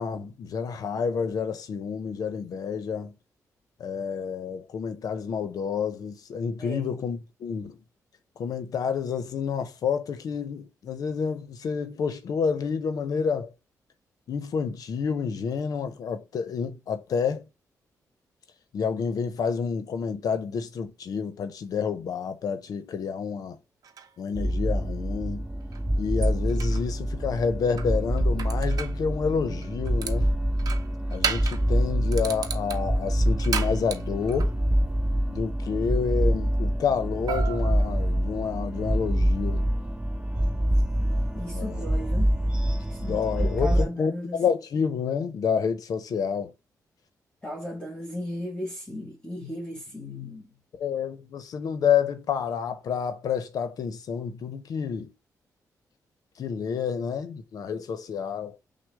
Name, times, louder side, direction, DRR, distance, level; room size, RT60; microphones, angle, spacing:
voice 1, 0.0-3.1 3.8-7.8 8.4-13.5 14.3-17.4 18.7-23.6 24.2-25.4 25.9-30.3 31.1-34.5 35.3-39.7 41.5-41.8 43.0-46.5 50.7-55.1 56.4-58.6, left 6 dB, 70° left, 0.7 m, -29 dB
voice 2, 6.6-6.9 41.3-42.4 42.9-44.4 47.4-50.5, left 1 dB, 15° left, 1.6 m, -36 dB
sound 1, 23.8-24.1 25.7-25.8 26.2-26.8 27.8-29.0 29.6-30.2 30.6-31.7 32.1-34.5 37.3-38.5, right 7 dB, 70° right, 0.7 m, -34 dB
sound 2, 24.3-43.8, equal, 10° right, 1.2 m, -26 dB
6.2 x 2.1 x 3.4 m
wide cardioid pair, 125°, 7 cm